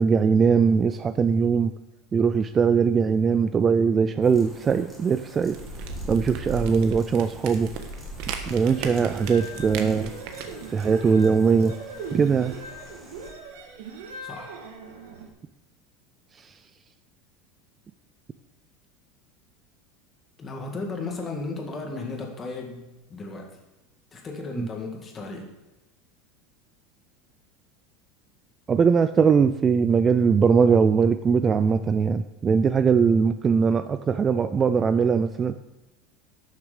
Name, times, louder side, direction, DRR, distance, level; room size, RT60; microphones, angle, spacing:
voice 1, 0.0-1.7 2.1-5.6 6.1-7.7 8.5-10.1 10.7-11.8 12.1-12.5 16.4-16.5 24.6-24.7 28.7-35.5, right 6 dB, 20° right, 11 dB, 0.3 m, -21 dB
sound 1, 4.2-13.3, right 2 dB, ahead, 2.1 m, -40 dB
sound 2, 5.5-10.7, right 7 dB, 60° right, 1.3 m, -39 dB
sound 3, 8.5-15.3, right 4 dB, 90° right, 2.3 m, -39 dB
voice 2, 14.2-14.5 20.4-23.6 24.1-25.5, left 3 dB, 20° left, 2 dB, 1.9 m, -35 dB
12.0 x 6.9 x 5.0 m, 1.0 s
supercardioid pair, 150°, 0 cm